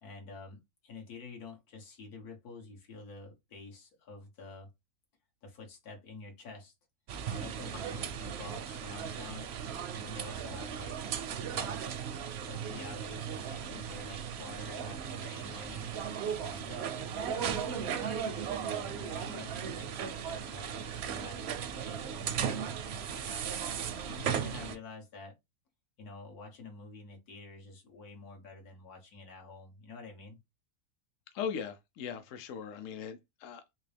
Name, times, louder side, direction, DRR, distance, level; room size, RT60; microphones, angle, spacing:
voice 1, 0.0-4.7 5.4-6.7 7.3-9.5 9.9-11.1 11.5-11.9 12.4-15.9 16.4-23.5 24.0-25.3 26.0-30.4, left 3 dB, 80° left, 1.8 m, -48 dB
sound 1, 7.1-24.7, right 8 dB, 65° right, 0.7 m, -37 dB
voice 2, 31.3-33.7, left 7 dB, 65° left, 0.9 m, -39 dB
3.7 x 2.7 x 3.3 m
omnidirectional pair, 1.6 m